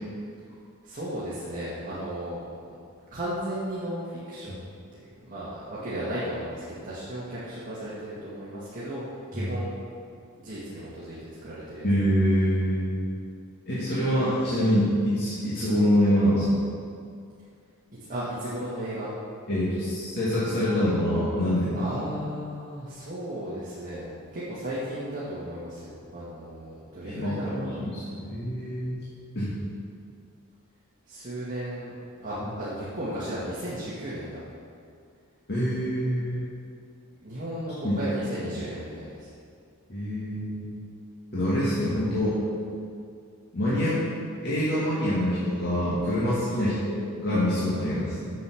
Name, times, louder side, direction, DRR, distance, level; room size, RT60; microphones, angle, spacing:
voice 1, 0.8-2.7 3.1-4.6 5.2-9.0 9.3-9.7 10.4-11.2 11.4-11.8 18.1-19.1 21.7-27.9 31.1-31.9 32.2-34.4 37.2-39.3 46.6-46.7, right 1 dB, 35° right, -10 dB, 2.0 m, -35 dB
voice 2, 11.8-13.1 13.7-16.6 19.5-21.9 27.0-29.0 29.4-29.5 35.5-36.5 37.8-38.0 38.4-38.5 39.9-40.7 41.3-42.4 43.5-44.0 44.4-48.3, equal, 50° left, -10 dB, 2.2 m, -25 dB
8.1 x 7.4 x 6.3 m, 2.4 s
head